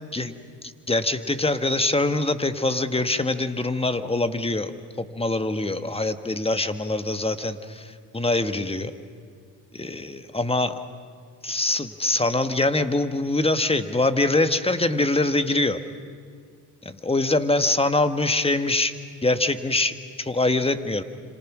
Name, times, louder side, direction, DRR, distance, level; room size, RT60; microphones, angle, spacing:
voice 1, 0.1-8.9 9.7-10.7 11.4-15.8 16.8-18.9 19.2-21.0, left 2 dB, 15° left, 9 dB, 1.5 m, -24 dB
29.0 x 26.5 x 6.2 m, 2.1 s
supercardioid pair, 80°, 44 cm